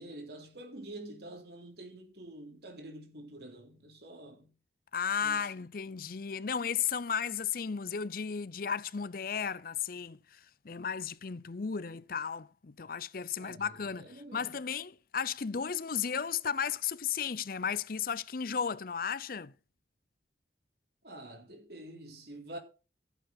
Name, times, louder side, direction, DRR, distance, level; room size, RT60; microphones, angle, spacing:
voice 1, 0.0-4.5 5.2-5.5 13.4-14.6 21.0-22.6, right 1 dB, 60° right, 3.7 m, -47 dB
voice 2, 4.9-19.5, left 7 dB, 55° left, 0.6 m, -34 dB
15.0 x 8.3 x 4.1 m
head